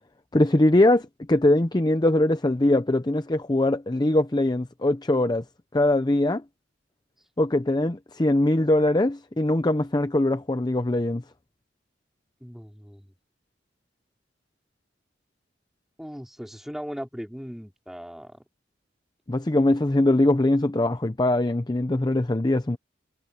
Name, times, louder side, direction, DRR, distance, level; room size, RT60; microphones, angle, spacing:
voice 1, 0.3-5.4 5.7-6.4 7.4-11.2 19.3-22.8, left 1 dB, 20° left, 0.6 m, -22 dB
voice 2, 12.4-13.1 16.0-18.4, equal, ahead, 3.2 m, -38 dB
head